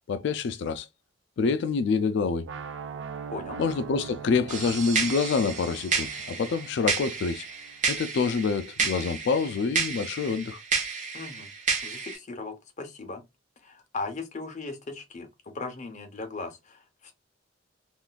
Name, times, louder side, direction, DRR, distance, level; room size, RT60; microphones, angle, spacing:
voice 1, 0.1-0.9 1.4-2.5 3.6-7.4 7.9-10.6, left 5 dB, 65° left, 0.3 m, -27 dB
sound 1, 2.4-8.4, right 6 dB, 70° right, 0.4 m, -42 dB
sound 2, 4.5-12.2, right 5 dB, 40° right, 0.8 m, -31 dB
voice 2, 11.1-11.5 11.8-13.2 13.6-15.3 15.5-17.1, left 3 dB, 40° left, 0.7 m, -38 dB
3.7 x 2.4 x 2.3 m
head